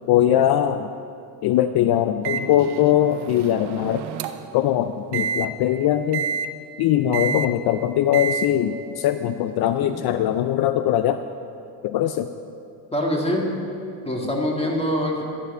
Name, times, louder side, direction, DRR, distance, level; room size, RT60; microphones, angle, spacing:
voice 1, 0.1-0.9 1.4-4.1 4.5-6.3 6.8-11.2 11.8-12.3, left 11 dB, 60° left, 10 dB, 0.5 m, -21 dB
Microwave oven, 2.2-4.6 5.1-5.5 6.1-6.5 7.1-7.5 8.1-8.5, right 7 dB, 65° right, 0.8 m, -28 dB
voice 2, 12.9-13.5 14.0-15.2, equal, 15° left, 0 dB, 2.3 m, -24 dB
12.0 x 8.4 x 5.5 m, 2.6 s
supercardioid pair, 85°, 44 cm